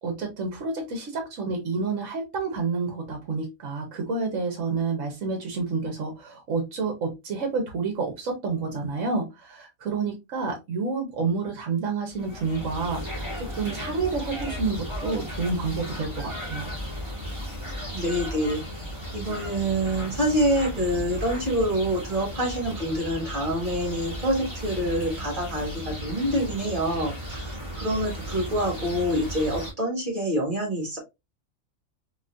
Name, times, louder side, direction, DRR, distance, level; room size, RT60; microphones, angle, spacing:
voice 1, 0.0-16.7, right 4 dB, 70° right, 3 dB, 1.3 m, -29 dB
sound 1, 12.1-29.7, equal, 20° right, 2.5 m, -35 dB
voice 2, 17.9-18.6 19.1-27.5 27.8-31.0, equal, 40° right, -1 dB, 1.7 m, -26 dB
4.0 x 2.9 x 2.5 m, 0.22 s
omnidirectional pair, 1.4 m